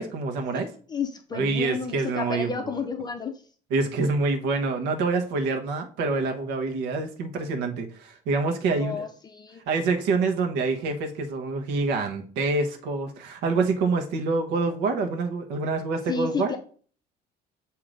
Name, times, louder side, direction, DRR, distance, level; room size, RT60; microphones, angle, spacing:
voice 1, 0.0-0.7 1.3-2.7 3.7-9.1 9.7-16.5, right 3 dB, 90° right, 4 dB, 1.1 m, -26 dB
voice 2, 0.9-3.4 8.8-9.6 16.1-16.6, left 6 dB, 25° left, 6 dB, 0.5 m, -31 dB
7.5 x 2.8 x 5.1 m, 0.43 s
cardioid pair, 155°, 17 cm